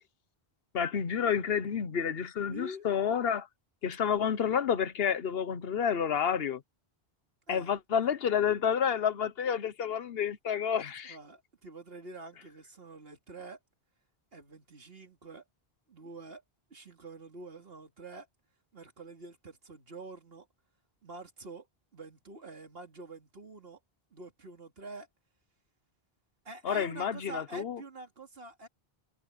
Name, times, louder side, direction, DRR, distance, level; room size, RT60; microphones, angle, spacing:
voice 1, 0.7-3.5 3.8-6.6 7.5-11.2 26.6-27.8, left 7 dB, 70° left, 1.1 m, -29 dB
voice 2, 2.5-2.9 7.5-7.7 11.0-13.6 14.3-15.4 15.9-16.4 16.7-18.3 18.7-20.5 21.0-21.7 21.9-23.8 24.1-25.1 26.4-28.7, right 3 dB, 70° right, 2.7 m, -46 dB
omnidirectional pair, 1.0 m